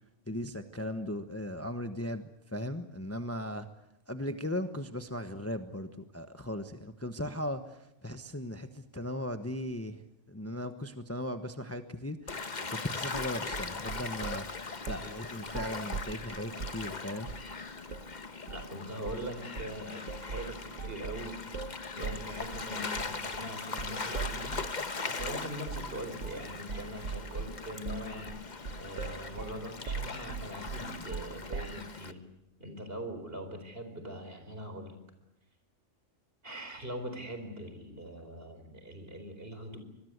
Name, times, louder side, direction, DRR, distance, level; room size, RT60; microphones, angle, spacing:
voice 1, 0.3-3.7 4.1-14.6 14.9-17.3, left 1 dB, 10° left, 8 dB, 1.1 m, -38 dB
Gull seagull / Waves surf, 12.3-32.1, left 4 dB, 40° left, 1.3 m, -40 dB
sound 1, 13.1-14.4 14.9-15.1 15.5-16.8 17.3-17.5 17.9-18.1 18.5-18.7 19.0-19.3 19.6-24.8 25.2-25.4 25.7-25.9 26.2-26.4 26.7-31.8, right 5 dB, 80° right, 1.7 m, -40 dB
voice 2, 18.5-21.4 22.0-24.6 25.0-28.4 28.8-32.2 32.6-34.9 36.4-39.8, equal, 50° right, 7 dB, 4.7 m, -42 dB
25.5 x 21.5 x 8.1 m, 0.85 s
omnidirectional pair, 1.3 m